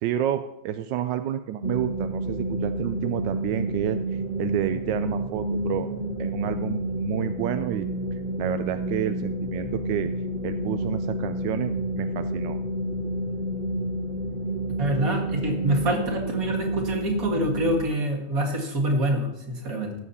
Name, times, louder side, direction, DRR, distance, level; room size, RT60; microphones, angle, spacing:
voice 1, 0.0-4.0 4.4-5.9 6.2-7.9 8.4-10.1 10.4-12.6, right 11 dB, 85° right, 9 dB, 1.2 m, -29 dB
sound 1, 1.6-17.8, right 1 dB, 35° right, 1.0 m, -29 dB
voice 2, 14.8-19.9, right 1 dB, 50° right, 2 dB, 2.3 m, -26 dB
18.0 x 7.2 x 4.2 m, 0.83 s
omnidirectional pair, 1.9 m